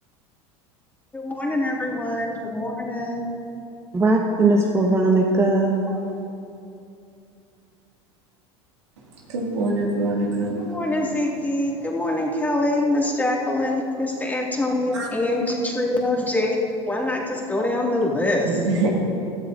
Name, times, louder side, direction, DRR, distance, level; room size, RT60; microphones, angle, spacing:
voice 1, 1.1-3.3 10.6-16.6 16.9-18.6, left 1 dB, 10° left, -3 dB, 2.5 m, -24 dB
voice 2, 3.9-6.0, right 2 dB, 20° right, 0 dB, 1.1 m, -19 dB
voice 3, 9.3-10.5 14.9-15.1 18.4-18.9, right 2 dB, 85° right, -3 dB, 2.4 m, -24 dB
16.5 x 13.0 x 2.8 m, 2.7 s
hypercardioid pair, 85°, 14 cm